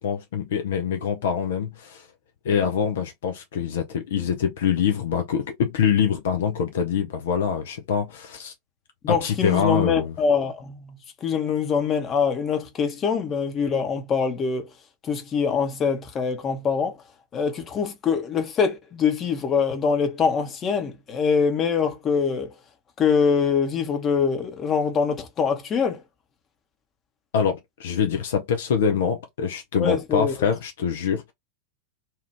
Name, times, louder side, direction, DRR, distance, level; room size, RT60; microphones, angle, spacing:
voice 1, 0.0-2.1 2.4-8.5 9.1-10.1 27.3-31.3, left 7 dB, 60° left, 0.5 m, -24 dB
voice 2, 9.0-14.7 15.1-17.0 17.3-22.5 23.0-26.0 29.8-30.3, left 6 dB, 25° left, 0.9 m, -24 dB
2.9 x 2.4 x 3.2 m
figure-of-eight pair, 90°, 0 cm